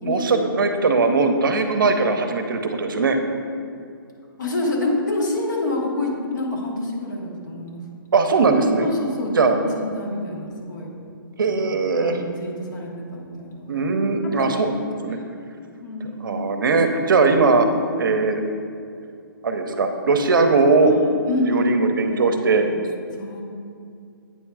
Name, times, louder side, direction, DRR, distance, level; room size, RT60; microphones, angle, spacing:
voice 1, 0.0-3.2 8.1-8.9 9.4-9.6 11.4-12.2 13.7-14.7 15.0-15.2 16.2-17.7 18.0-18.4 19.4-21.0 21.5-22.6, right 4 dB, 65° right, 6 dB, 0.6 m, -19 dB
voice 2, 4.4-7.8 8.8-10.9 11.4-11.6 12.0-13.6 14.2-14.5 15.1-15.2 15.8-16.5 20.8-21.8 22.1-22.7 23.2-23.4, left 2 dB, 55° left, -1 dB, 1.4 m, -27 dB
8.3 x 3.5 x 4.7 m, 2.4 s
hypercardioid pair, 175°, 12 cm